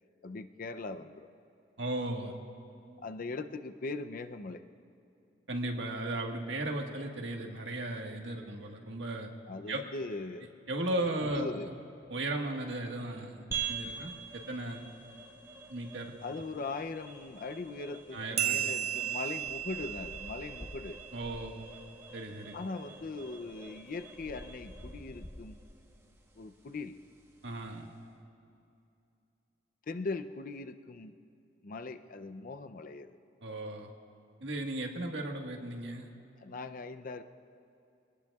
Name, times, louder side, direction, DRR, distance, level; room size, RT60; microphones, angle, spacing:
voice 1, 0.2-1.3 3.0-4.6 9.5-10.5 11.2-11.7 16.2-21.0 22.5-25.6 26.4-27.0 29.9-31.1 31.6-33.1 36.4-37.2, left 3 dB, 50° left, 9 dB, 0.5 m, -40 dB
voice 2, 1.8-2.3 5.5-9.3 9.7-9.8 10.7-11.7 12.1-14.8 15.7-16.1 18.1-18.7 21.1-21.7 22.1-22.5 27.4-27.9 33.4-33.9 34.4-36.1, right 1 dB, 80° right, 2 dB, 1.5 m, -36 dB
sound 1, 13.5-28.1, right 6 dB, 15° right, 1.2 m, -46 dB
sound 2, 18.4-21.4, right 10 dB, 35° right, 0.6 m, -35 dB
sound 3, 19.4-22.0 22.9-23.0 23.3-25.9, equal, 10° left, 0.7 m, -50 dB
25.5 x 19.0 x 2.4 m, 2.6 s
head